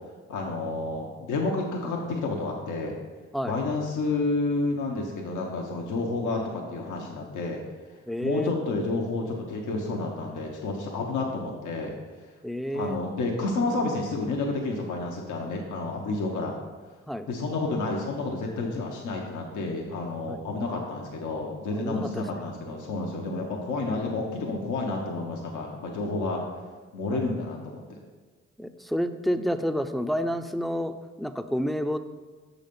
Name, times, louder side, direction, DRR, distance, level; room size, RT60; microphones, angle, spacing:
voice 1, 0.3-3.0 3.5-7.6 8.2-11.9 12.7-16.6 17.3-26.4 26.9-28.0, left 3 dB, 80° left, 0 dB, 0.8 m, -30 dB
voice 2, 8.1-8.5 12.4-13.0 17.1-17.3 20.3-20.4 21.7-22.5 27.1-27.2 28.6-32.0, equal, ahead, 9 dB, 0.4 m, -29 dB
6.5 x 4.0 x 5.2 m, 1.3 s
supercardioid pair, 40°, 30 cm